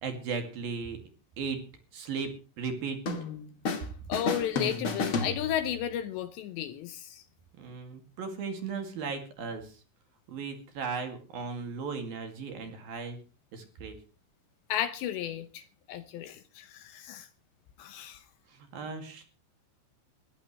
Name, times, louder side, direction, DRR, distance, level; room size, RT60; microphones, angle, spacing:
voice 1, 0.0-1.0 1.4-1.6 1.9-3.0 7.6-9.8 10.3-13.2 13.5-14.0 18.5-19.2, right 5 dB, 55° right, 3.7 m, -36 dB
sound 1, 3.1-3.9 4.1-5.9, left 4 dB, 45° left, 1.9 m, -32 dB
voice 2, 4.1-7.2 14.7-17.3 17.8-18.2, left 10 dB, 75° left, 2.9 m, -34 dB
21.0 x 15.0 x 3.2 m
omnidirectional pair, 5.7 m